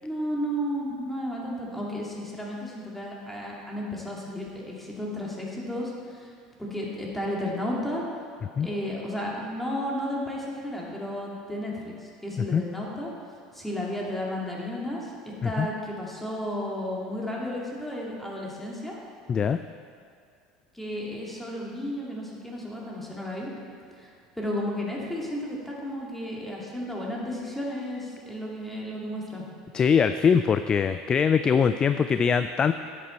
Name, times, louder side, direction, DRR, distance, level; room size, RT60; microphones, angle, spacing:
voice 1, 0.0-6.3 6.6-8.0 8.6-13.1 13.5-19.0 20.7-23.5 24.0-24.1 24.4-29.4, left 1 dB, 5° left, -3 dB, 2.5 m, -33 dB
voice 2, 19.3-19.6 29.7-32.7, left 6 dB, 30° left, 10 dB, 0.3 m, -22 dB
10.0 x 8.4 x 4.4 m, 2.4 s
hypercardioid pair, 80°, 3 cm